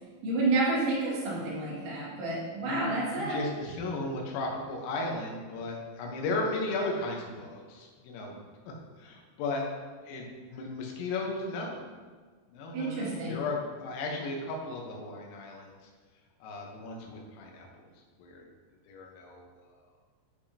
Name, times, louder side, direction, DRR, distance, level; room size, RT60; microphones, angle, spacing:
voice 1, 0.2-3.4 12.7-13.4, right 2 dB, 75° right, -8 dB, 4.8 m, -29 dB
voice 2, 2.7-8.4 8.7-9.6 10.0-11.8 12.5-15.8 16.4-17.7 18.2-18.5 18.9-19.5, left 2 dB, 85° left, 0 dB, 3.7 m, -35 dB
12.5 x 5.0 x 2.8 m, 1.5 s
omnidirectional pair, 5.9 m